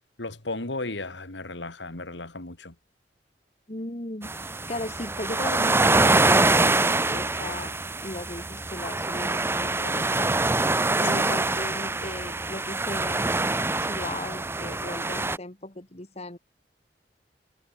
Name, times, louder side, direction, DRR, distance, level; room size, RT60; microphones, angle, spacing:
voice 1, 0.2-2.7 11.0-11.3, left 2 dB, 85° left, 2.8 m, -35 dB
voice 2, 3.7-7.7 8.0-10.3 11.0-13.4 13.8-16.4, left 1 dB, 35° left, 2.4 m, -37 dB
sound 1, 4.2-15.4, right 2 dB, 15° right, 0.8 m, -25 dB
head